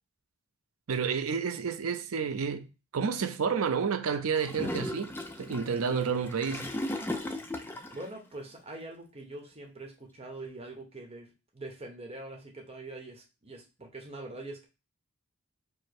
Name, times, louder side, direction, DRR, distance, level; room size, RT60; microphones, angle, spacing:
voice 1, 0.9-2.7 2.9-6.7, right 6 dB, 75° right, 0.5 m, -30 dB
Gurgling / Toilet flush, 4.3-8.1, left 1 dB, 10° left, 0.3 m, -36 dB
voice 2, 7.9-14.7, right 2 dB, 25° right, 0.9 m, -44 dB
4.8 x 2.0 x 4.3 m
head